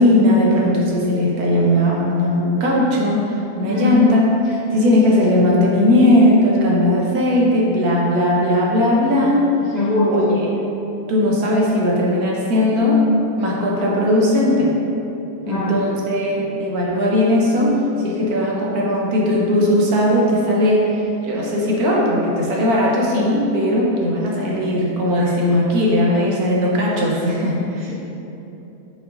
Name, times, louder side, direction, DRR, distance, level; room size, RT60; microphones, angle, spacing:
voice 1, 0.0-9.5 10.1-10.5 11.1-13.0 13.4-14.7 15.5-27.9, left 1 dB, 75° right, -4 dB, 1.4 m, -18 dB
voice 2, 3.7-4.0 9.6-10.4 15.5-15.7, left 2 dB, 30° left, -10 dB, 1.4 m, -21 dB
5.3 x 4.7 x 3.8 m, 3.0 s
omnidirectional pair, 1.6 m